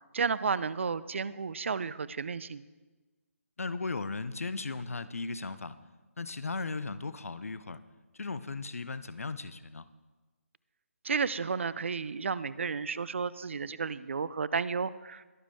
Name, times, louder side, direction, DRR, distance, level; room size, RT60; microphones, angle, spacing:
voice 1, 0.1-2.6 11.0-15.3, right 5 dB, 55° right, 18 dB, 0.5 m, -32 dB
voice 2, 3.6-5.8 6.2-7.8 8.1-9.9, left 3 dB, 75° left, 14 dB, 0.7 m, -36 dB
22.0 x 7.3 x 3.5 m, 1.2 s
figure-of-eight pair, 150°, 8 cm